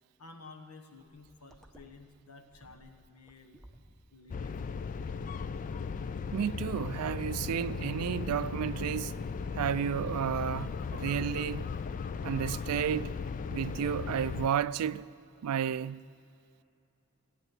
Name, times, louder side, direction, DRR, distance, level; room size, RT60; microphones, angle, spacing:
voice 1, 0.2-3.6 4.1-4.6, left 3 dB, 80° left, 1.2 m, -53 dB
sound 1, 1.0-12.9, right 1 dB, ahead, 0.9 m, -58 dB
sound 2, 4.3-14.5, left 5 dB, 35° left, 0.3 m, -37 dB
voice 2, 6.3-9.2 9.5-11.7 12.2-13.2 13.5-15.1 15.4-16.0, right 8 dB, 90° right, 0.4 m, -32 dB
16.5 x 9.2 x 7.4 m
head